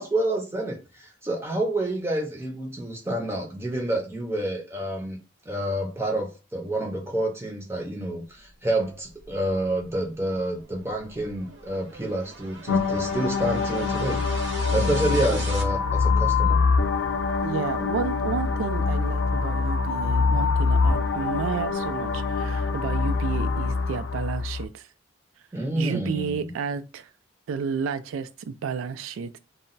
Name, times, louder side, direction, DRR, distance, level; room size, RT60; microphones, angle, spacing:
voice 1, 0.0-5.2 5.5-14.4 14.7-16.6 25.5-26.5, right 1 dB, 15° right, 0.5 m, -28 dB
sound 1, 8.9-15.6, right 3 dB, 65° right, 0.9 m, -42 dB
sound 2, 12.7-24.6, left 4 dB, 65° left, 0.5 m, -24 dB
voice 2, 17.4-24.9 25.8-27.1 27.5-29.4, right 6 dB, 90° right, 0.3 m, -31 dB
2.2 x 2.0 x 3.8 m
head